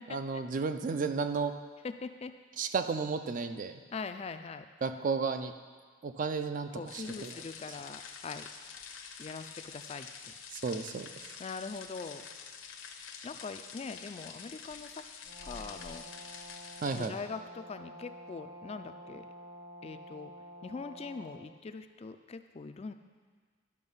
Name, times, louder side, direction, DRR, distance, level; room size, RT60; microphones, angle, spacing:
voice 1, 0.1-1.5 2.6-3.8 4.8-5.5 6.0-7.4 10.5-11.1 16.8-17.1, right 4 dB, 40° right, 9 dB, 0.4 m, -33 dB
voice 2, 1.8-2.3 3.9-4.7 6.7-8.5 9.2-10.3 11.4-12.3 13.2-15.0 15.4-16.0 16.9-19.2 19.8-20.3 20.6-22.9, left 4 dB, 30° left, 9 dB, 0.3 m, -42 dB
sound 1, 6.9-17.1, left 6 dB, 75° left, 0.8 m, -47 dB
Brass instrument, 15.2-21.5, equal, 75° right, 2.0 m, -49 dB
10.5 x 5.8 x 5.5 m, 1.5 s
head